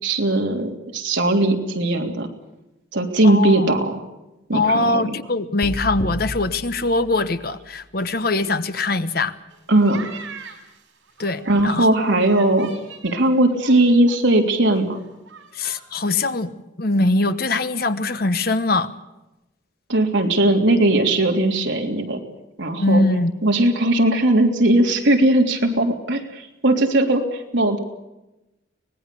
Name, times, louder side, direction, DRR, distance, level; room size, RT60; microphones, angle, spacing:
voice 1, 0.0-2.3 2.9-4.0 4.5-5.1 9.7-10.1 11.4-12.7 13.0-15.0 19.9-22.2 22.6-23.0 23.4-27.8, right 1 dB, 70° right, 2 dB, 3.3 m, -18 dB
voice 2, 3.2-3.7 4.5-9.3 11.2-12.1 15.5-18.9 22.8-23.3, left 2 dB, 50° left, 11 dB, 1.1 m, -22 dB
sound 1, 5.6-7.7, equal, 30° left, 1.8 m, -32 dB
sound 2, 9.5-11.8 12.2-14.2 14.4-14.5 14.8-15.8 16.1-16.4, right 5 dB, 85° right, 5.7 m, -41 dB
24.5 x 19.5 x 6.9 m, 0.99 s
head